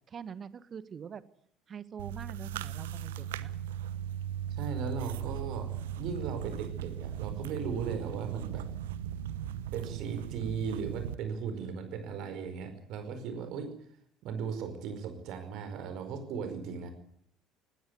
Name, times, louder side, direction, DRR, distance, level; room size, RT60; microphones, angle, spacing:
voice 1, 0.1-1.2 1.7-3.5, right 7 dB, 40° right, 16 dB, 1.4 m, -44 dB
sound 1, 2.0-11.1, right 10 dB, 70° right, 0.9 m, -38 dB
voice 2, 4.6-5.7 6.0-8.7 9.7-13.7 14.2-16.9, right 6 dB, 55° right, 7 dB, 4.9 m, -37 dB
19.0 x 17.5 x 9.6 m, 0.67 s
figure-of-eight pair, 60°, 0 cm